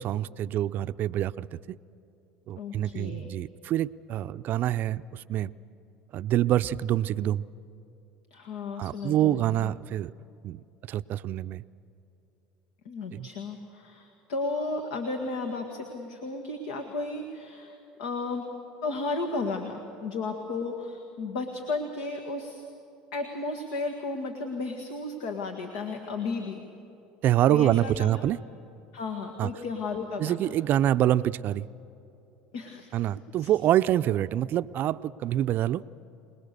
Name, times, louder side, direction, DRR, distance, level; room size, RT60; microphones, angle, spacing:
voice 1, 0.0-1.5 2.5-5.5 6.1-7.5 8.8-10.1 10.4-10.6 10.9-11.6 13.1-13.3 27.2-28.4 29.4-29.5 30.2-31.7 32.9-35.8, right 12 dB, 50° right, 15 dB, 0.5 m, -26 dB
voice 2, 2.6-3.3 8.3-9.7 12.9-18.5 18.8-22.6 23.1-26.7 27.5-28.1 28.9-30.6 32.5-32.9 33.4-33.5, left 3 dB, 80° left, 5 dB, 1.8 m, -34 dB
26.5 x 20.0 x 6.8 m, 2.9 s
hypercardioid pair, 85°, 4 cm